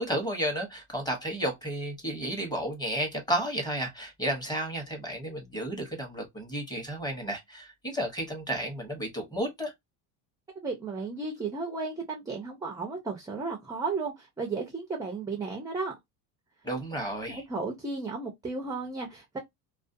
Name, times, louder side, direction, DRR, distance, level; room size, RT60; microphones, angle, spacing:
voice 1, 0.0-9.7 16.6-17.4, equal, 10° left, 0.9 m, -32 dB
voice 2, 10.6-15.9 17.3-19.4, right 4 dB, 10° right, 0.4 m, -34 dB
2.4 x 2.2 x 2.5 m
supercardioid pair, 125°, 42 cm